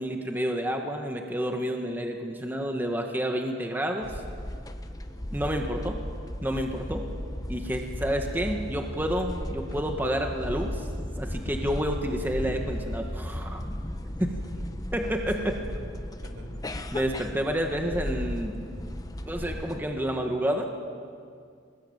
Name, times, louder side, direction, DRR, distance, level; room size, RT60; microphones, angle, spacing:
voice 1, 0.0-4.1 5.3-6.0 6.4-7.1 7.5-10.9 11.2-13.6 14.2-14.3 14.9-15.5 16.9-18.5 19.3-20.7, equal, 10° right, 2 dB, 1.8 m, -29 dB
sound 1, 4.0-19.8, left 1 dB, 20° left, 1.0 m, -35 dB
voice 2, 4.8-5.4 7.7-8.0 14.5-15.0 15.4-15.8 16.1-16.7, equal, 80° right, 4 dB, 4.8 m, -48 dB
25.5 x 20.5 x 9.0 m, 2.2 s
head